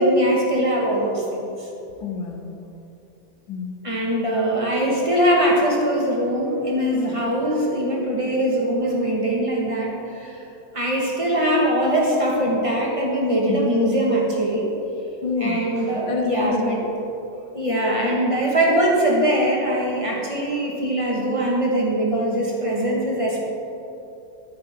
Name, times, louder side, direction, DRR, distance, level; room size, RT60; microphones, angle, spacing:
voice 1, 0.0-1.7 3.8-10.4 10.7-14.6 15.4-16.8 17.5-23.4, right 1 dB, 15° right, -3 dB, 1.5 m, -22 dB
voice 2, 2.0-2.6 3.5-3.8 13.5-13.6 15.2-15.6 16.1-16.6, left 5 dB, 75° left, 3 dB, 1.8 m, -27 dB
13.5 x 9.1 x 3.7 m, 2.9 s
omnidirectional pair, 2.2 m